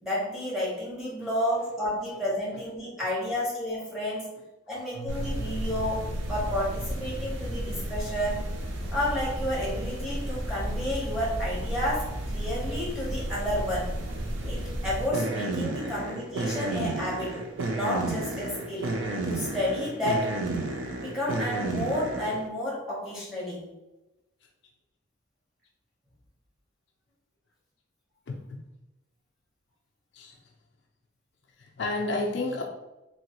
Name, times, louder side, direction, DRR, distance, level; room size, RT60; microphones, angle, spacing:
voice 1, 0.0-4.3 4.7-6.0 6.3-8.5 8.9-14.0 14.4-17.4 17.7-18.9 19.3-20.3 21.0-23.6, left 1 dB, 5° right, -6 dB, 0.9 m, -31 dB
Keyboard (musical), 4.9-8.0, right 4 dB, 85° right, 0.8 m, -44 dB
sound 1, 5.1-22.5, right 1 dB, 70° right, 0.5 m, -32 dB
voice 2, 28.3-28.6 30.1-30.4 31.6-32.6, left 2 dB, 60° left, 0 dB, 0.4 m, -31 dB
2.9 x 2.7 x 2.8 m, 0.98 s
head